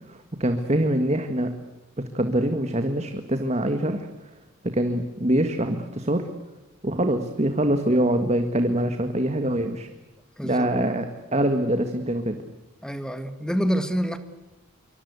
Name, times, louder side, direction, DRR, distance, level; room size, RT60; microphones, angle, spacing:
voice 1, 0.1-1.5 2.1-4.1 4.6-6.3 6.8-9.9 10.4-11.1 11.3-12.4, right 1 dB, 30° right, 7 dB, 1.7 m, -24 dB
voice 2, 10.4-10.7 12.8-14.2, equal, 5° left, 10 dB, 1.9 m, -27 dB
26.5 x 24.5 x 8.3 m, 1.1 s
head